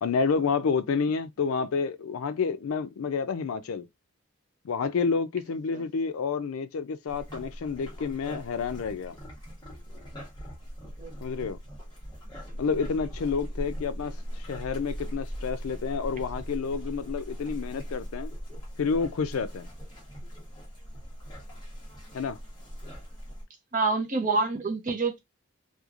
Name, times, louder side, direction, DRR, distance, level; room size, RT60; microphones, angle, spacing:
voice 1, 0.0-3.9 4.6-9.1 11.2-11.6 12.5-14.1 14.5-18.3 18.8-19.7 22.1-22.4, left 5 dB, 80° left, 0.4 m, -29 dB
sound 1, 7.1-23.4, equal, 20° left, 1.0 m, -40 dB
voice 2, 11.0-11.5 23.7-25.2, right 3 dB, 35° right, 0.6 m, -28 dB
3.0 x 2.3 x 2.4 m
head